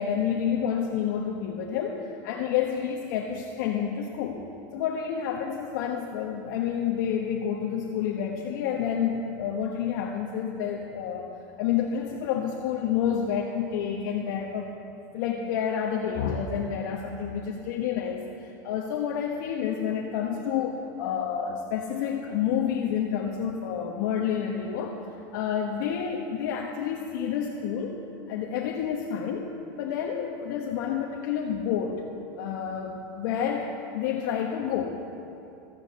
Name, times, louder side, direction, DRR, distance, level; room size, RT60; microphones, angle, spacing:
voice 1, 0.0-4.4 4.7-11.3 11.6-14.7 15.1-24.9 25.3-28.0 28.3-29.5 29.8-32.0 32.4-33.7 33.9-35.0, left 8 dB, 65° left, 0 dB, 1.2 m, -29 dB
13.5 x 8.9 x 8.1 m, 2.8 s
supercardioid pair, 150°, 11 cm